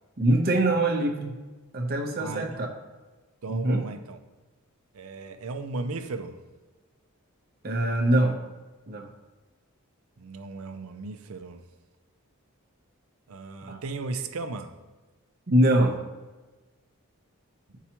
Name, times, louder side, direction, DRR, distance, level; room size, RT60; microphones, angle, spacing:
voice 1, 0.2-1.4 1.7-2.7 3.5-3.9 7.6-8.4 8.9-9.1 13.7-13.8 15.5-16.0, right 1 dB, 45° right, 2 dB, 0.7 m, -23 dB
voice 2, 2.2-2.6 3.4-4.2 4.9-6.4 10.2-11.6 13.3-14.7, right 3 dB, 80° right, 8 dB, 0.5 m, -36 dB
9.7 x 4.6 x 2.9 m, 1.3 s
head